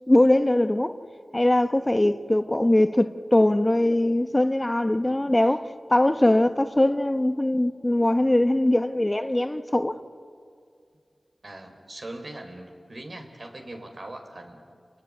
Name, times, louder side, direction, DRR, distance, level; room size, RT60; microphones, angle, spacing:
voice 1, 0.1-1.0 1.3-10.0, left 1 dB, 25° left, 1.1 m, -21 dB
voice 2, 11.4-14.6, right 1 dB, 60° right, 4.4 m, -40 dB
29.5 x 19.0 x 9.9 m
cardioid pair, 45°, 0 cm